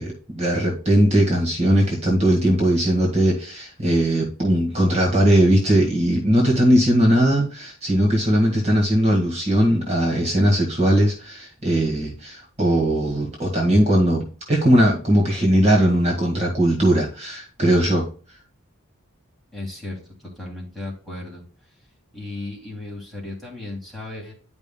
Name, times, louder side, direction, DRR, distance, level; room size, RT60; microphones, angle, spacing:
voice 1, 0.0-18.0, equal, 30° right, -2 dB, 1.8 m, -19 dB
voice 2, 19.5-20.0 20.4-21.4 22.1-24.3, left 2 dB, ahead, -4 dB, 2.8 m, -35 dB
11.0 x 5.4 x 2.3 m, 0.38 s
head